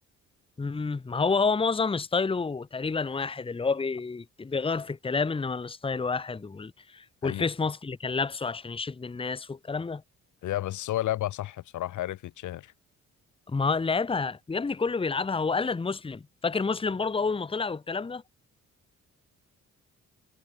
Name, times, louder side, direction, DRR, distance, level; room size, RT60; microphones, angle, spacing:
voice 1, 0.6-10.0 13.5-18.2, left 4 dB, 20° left, 1.0 m, -29 dB
voice 2, 10.4-12.7, left 14 dB, 75° left, 1.3 m, -32 dB
cardioid pair, 90°, 30 cm